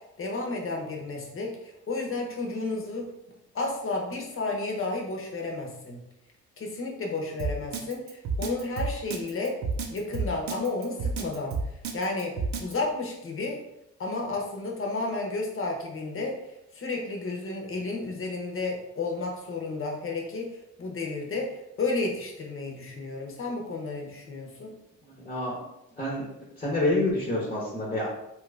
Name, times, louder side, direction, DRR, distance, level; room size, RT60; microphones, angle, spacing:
voice 1, 0.2-3.0 3.5-6.0 6.6-9.6 9.9-11.6 11.9-12.3 12.6-13.6 14.0-16.4 16.7-24.7, left 3 dB, 45° left, 0 dB, 0.9 m, -32 dB
Drum kit, 7.4-12.7, right 4 dB, 65° right, 0.6 m, -30 dB
voice 2, 25.3-25.6 26.0-26.2 26.6-28.1, left 2 dB, 20° left, -4 dB, 1.0 m, -27 dB
2.9 x 2.5 x 3.3 m, 0.85 s
cardioid pair, 90°, 30 cm